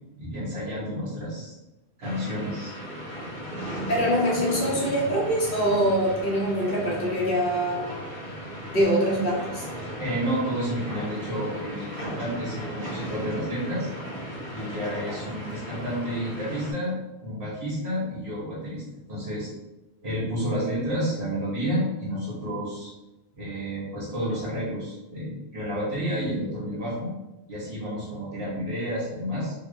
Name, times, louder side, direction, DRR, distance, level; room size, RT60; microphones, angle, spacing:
voice 1, 0.1-1.5 2.0-2.7 10.0-13.9 14.5-18.8 19.1-19.5 20.0-22.9 23.3-27.1 27.5-29.5, equal, 55° right, -9 dB, 1.5 m, -30 dB
sound 1, 2.0-16.7, equal, 75° right, 1.4 m, -36 dB
voice 2, 3.9-7.8 8.7-9.7, equal, 50° left, -4 dB, 1.1 m, -24 dB
3.2 x 2.6 x 3.2 m, 1.0 s
omnidirectional pair, 1.1 m